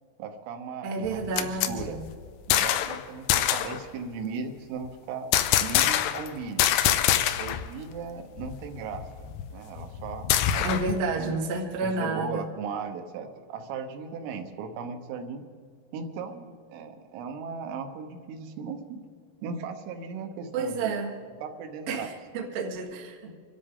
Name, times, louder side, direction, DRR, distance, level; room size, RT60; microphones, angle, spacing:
voice 1, 0.2-2.0 2.5-5.3 5.6-6.7 7.4-10.7 11.2-11.3 11.8-15.4 15.9-19.0 19.4-21.0 21.4-22.1, right 5 dB, 90° right, 6 dB, 3.7 m, -37 dB
voice 2, 0.8-2.1 10.6-12.5 20.5-21.1 21.9-23.4, right 3 dB, 70° right, 0 dB, 1.6 m, -30 dB
sound 1, 1.1-3.0 3.3-3.8 5.3-6.3 6.6-7.7 7.9-8.0 8.4-11.0, left 11 dB, 80° left, 2.9 m, -25 dB
25.5 x 13.0 x 3.8 m, 2.1 s
omnidirectional pair, 5.6 m